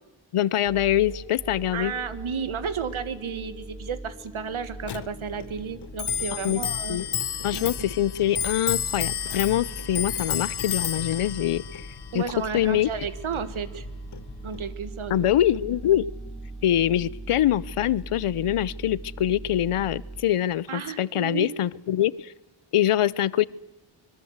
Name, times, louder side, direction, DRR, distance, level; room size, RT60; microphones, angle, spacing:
voice 1, 0.3-1.9 6.4-6.6 6.9-7.0 7.4-11.8 12.1-12.2 12.5-12.9 15.1-16.1 16.6-22.3 22.7-23.5, left 12 dB, 85° left, 21 dB, 0.8 m, -24 dB
sound 1, 0.7-20.2, right 2 dB, ahead, 3.2 m, -41 dB
voice 2, 1.7-7.0 7.5-7.7 12.1-13.9 14.4-15.3 20.7-21.5, right 6 dB, 70° right, 14 dB, 1.8 m, -32 dB
Clock, 4.8-14.7, left 8 dB, 50° left, 1.0 m, -32 dB
25.0 x 22.0 x 8.1 m, 1.0 s
wide cardioid pair, 125°, 50 cm